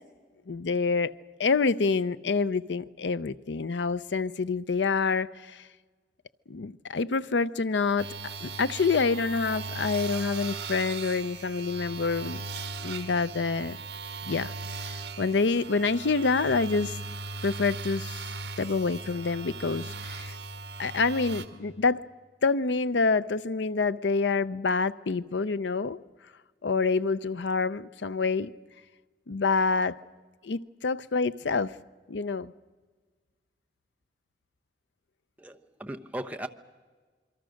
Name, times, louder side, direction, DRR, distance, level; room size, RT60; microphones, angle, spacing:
voice 1, 0.5-1.1 1.4-5.6 6.5-12.4 12.8-13.8 14.3-14.5 14.9-17.0 17.4-18.2 18.6-20.3 20.8-22.0 22.4-26.0 26.6-28.5 29.3-29.9 30.4-31.7 32.1-32.5, left 4 dB, 85° left, 0.6 m, -27 dB
sound 1, 8.0-21.5, right 3 dB, 65° right, 1.8 m, -38 dB
voice 2, 35.4-36.5, right 1 dB, 10° right, 0.9 m, -37 dB
27.0 x 23.5 x 6.4 m
head